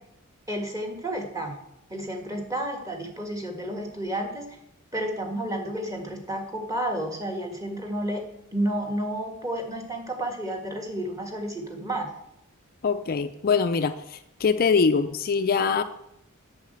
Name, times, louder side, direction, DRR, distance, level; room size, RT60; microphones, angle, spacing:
voice 1, 0.5-1.6 1.9-4.6 4.9-8.2 8.5-12.1, right 1 dB, 15° right, 3 dB, 1.8 m, -31 dB
voice 2, 12.8-15.8, left 5 dB, 45° left, 9 dB, 0.5 m, -23 dB
8.3 x 6.5 x 8.0 m, 0.80 s
head